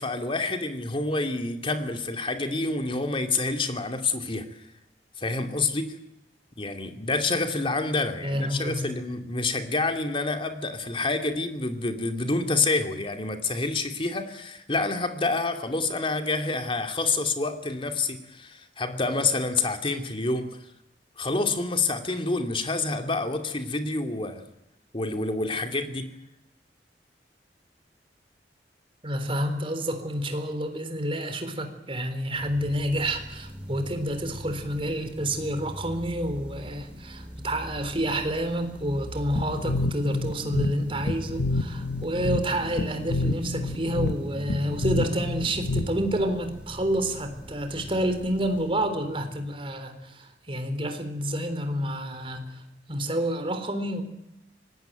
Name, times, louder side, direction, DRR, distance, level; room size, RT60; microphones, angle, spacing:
voice 1, 0.0-4.6 5.2-6.0 6.6-20.6 21.2-24.4 24.9-26.1, left 3 dB, 30° left, 6 dB, 2.6 m, -28 dB
voice 2, 8.2-8.9 29.0-52.6 52.9-54.0, right 1 dB, 30° right, 8 dB, 3.8 m, -29 dB
sound 1, 32.3-49.8, equal, 5° right, 4.6 m, -42 dB
sound 2, 39.4-46.2, left 2 dB, 80° left, 1.5 m, -29 dB
25.0 x 19.0 x 9.1 m, 0.86 s
head